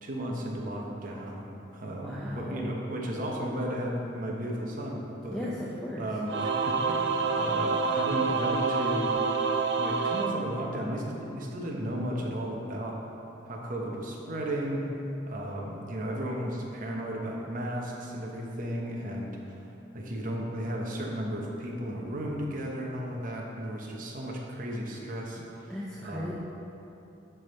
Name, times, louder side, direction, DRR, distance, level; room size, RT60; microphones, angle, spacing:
voice 1, 0.0-1.5 1.7-5.5 6.0-9.2 9.8-13.0 13.5-14.8 15.3-19.6 19.9-26.3, equal, 40° right, -1 dB, 0.8 m, -34 dB
voice 2, 1.8-2.9 5.3-6.1 25.7-26.3, left 1 dB, 5° left, -6 dB, 0.4 m, -36 dB
Singing / Musical instrument, 6.3-11.1, right 4 dB, 55° right, 0.4 m, -28 dB
10.0 x 3.4 x 4.3 m, 2.9 s
head